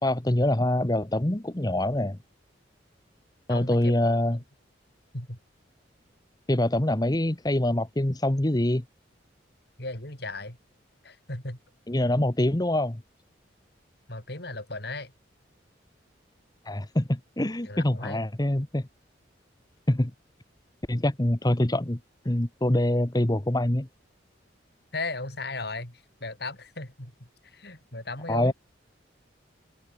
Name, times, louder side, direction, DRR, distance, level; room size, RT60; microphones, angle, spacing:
voice 1, 0.0-2.2 3.5-4.4 6.5-8.8 11.9-13.0 16.6-18.9 19.9-20.1 20.9-22.0 22.2-23.9 28.3-28.5, left 1 dB, 20° left, 1.1 m, -25 dB
voice 2, 3.5-3.9 5.1-5.4 9.8-10.6 11.0-11.6 14.1-15.1 17.6-18.2 24.9-27.1 27.5-28.5, left 2 dB, 55° left, 5.2 m, -36 dB
open air
head